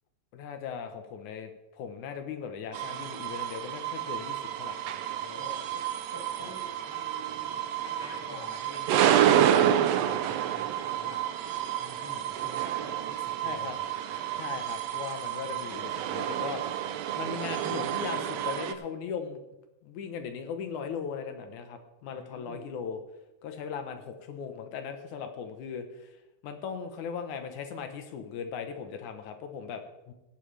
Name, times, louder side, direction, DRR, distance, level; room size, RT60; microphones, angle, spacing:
voice 1, 0.3-4.8 6.4-6.5 13.4-13.8 14.3-16.6 17.1-19.4 19.8-23.0 23.4-26.1 26.4-30.1, left 6 dB, 85° left, 6 dB, 2.6 m, -38 dB
sound 1, 2.7-18.7, right 10 dB, 75° right, 1.7 m, -29 dB
voice 2, 5.2-9.1 9.6-11.4 11.8-13.8 22.1-22.6, left 1 dB, 10° left, -1 dB, 1.8 m, -48 dB
15.5 x 11.5 x 3.4 m, 0.95 s
omnidirectional pair, 3.4 m